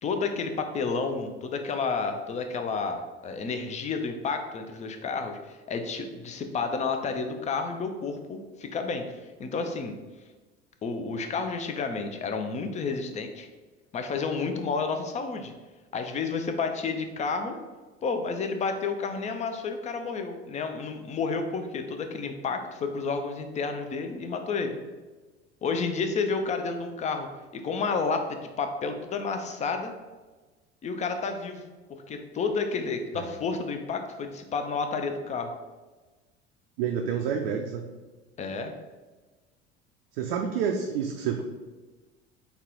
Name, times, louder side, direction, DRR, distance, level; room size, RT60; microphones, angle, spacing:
voice 1, 0.0-9.9 10.8-13.5 13.9-15.5 15.9-17.6 18.0-24.8 25.6-27.3 27.5-29.9 30.8-31.6 31.9-35.5 38.4-38.7, left 4 dB, 20° left, 6 dB, 0.5 m, -31 dB
voice 2, 36.8-37.9 40.1-41.4, right 7 dB, 60° right, 2 dB, 0.5 m, -28 dB
4.1 x 2.3 x 3.8 m, 1.2 s
figure-of-eight pair, 70°, 33 cm